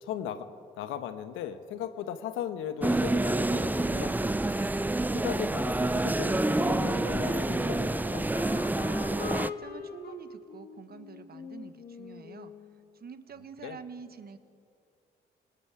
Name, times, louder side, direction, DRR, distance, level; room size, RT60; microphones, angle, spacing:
voice 1, 0.0-0.5 0.8-4.4 5.1-8.3 13.6-13.8, left 9 dB, 85° left, 10 dB, 1.1 m, -37 dB
sound 1, 2.8-9.5, right 2 dB, 10° right, 0.5 m, -28 dB
Wind instrument woodwind instrument, 6.2-12.8, left 5 dB, 50° left, 1.7 m, -41 dB
voice 2, 9.1-12.5 13.0-14.4, right 6 dB, 50° right, 11 dB, 1.3 m, -46 dB
29.0 x 19.0 x 4.9 m, 2.4 s
supercardioid pair, 75°, 20 cm